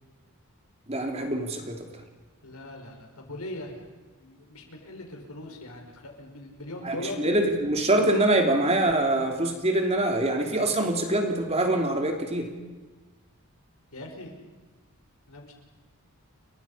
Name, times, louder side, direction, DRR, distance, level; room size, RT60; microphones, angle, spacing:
voice 1, 0.9-1.8 6.8-12.5, right 1 dB, 30° right, 3 dB, 3.1 m, -24 dB
voice 2, 2.4-3.7 4.2-7.3 13.9-14.3 15.3-15.5, left 1 dB, 80° left, 3 dB, 5.5 m, -40 dB
30.0 x 24.0 x 5.7 m, 1.3 s
head